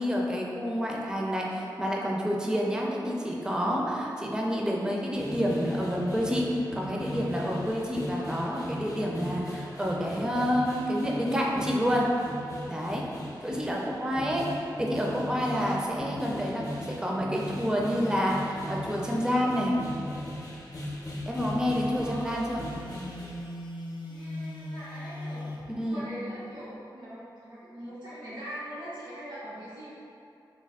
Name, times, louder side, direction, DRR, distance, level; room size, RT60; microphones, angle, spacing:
voice 1, 0.0-12.1 12.7-13.1 13.4-19.7 21.3-22.6 25.8-26.1, equal, 10° right, -2 dB, 0.4 m, -28 dB
sound 1, 5.1-23.4, left 1 dB, 45° left, 0.6 m, -39 dB
voice 2, 21.8-22.5 24.0-25.5 25.8-29.9, equal, 90° right, -12 dB, 1.1 m, -42 dB
Telephone, 22.6-25.7, left 1 dB, 80° left, 0.4 m, -39 dB
3.3 x 2.5 x 3.4 m, 2.6 s
wide cardioid pair, 110°, 8 cm